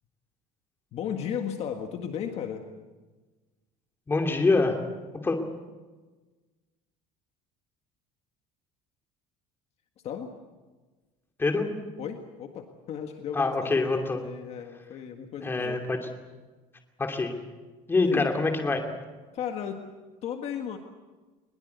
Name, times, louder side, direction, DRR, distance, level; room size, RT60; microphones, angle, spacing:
voice 1, 0.9-2.7 10.0-10.3 12.0-15.8 18.0-18.3 19.3-19.9 20.2-20.8, left 8 dB, 45° left, 5 dB, 1.7 m, -35 dB
voice 2, 4.1-4.8 5.2-5.4 11.4-11.7 13.3-14.2 15.4-16.0 17.0-17.3 17.9-18.8, left 3 dB, 15° left, 3 dB, 2.7 m, -25 dB
21.5 x 21.5 x 8.2 m, 1.3 s
cardioid pair, 160°, 16 cm